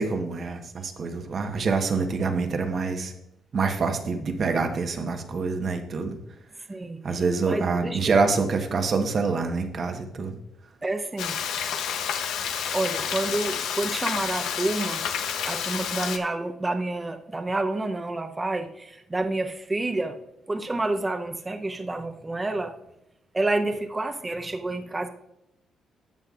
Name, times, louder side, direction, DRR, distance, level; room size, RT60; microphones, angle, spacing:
voice 1, 0.0-3.1 3.5-6.2 7.0-10.4, right 4 dB, 50° right, 5 dB, 1.2 m, -26 dB
voice 2, 6.7-7.0 7.4-8.1 10.8-11.4 12.7-15.1 15.4-20.2 20.5-22.7 23.3-25.1, right 2 dB, 20° right, 7 dB, 0.7 m, -29 dB
Frying (food), 11.2-16.2, left 8 dB, 80° left, 0.8 m, -29 dB
12.5 x 7.8 x 2.5 m, 0.83 s
cardioid pair, 90°, 0 cm